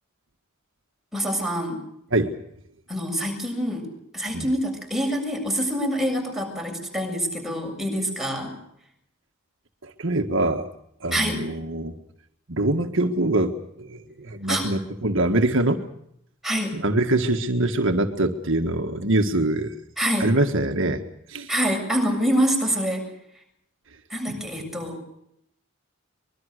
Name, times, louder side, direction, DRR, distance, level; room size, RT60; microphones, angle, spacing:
voice 1, 1.1-1.8 2.9-3.9 4.1-8.6 11.1-11.4 14.5-14.7 16.4-16.8 20.0-20.3 21.5-23.1 24.1-25.0, equal, ahead, 1 dB, 7.4 m, -26 dB
voice 2, 9.8-10.7 11.0-12.0 12.5-15.8 16.7-19.7 20.2-21.0 21.3-21.5, right 2 dB, 65° right, 5 dB, 1.7 m, -24 dB
24.5 x 22.0 x 6.6 m, 0.74 s
head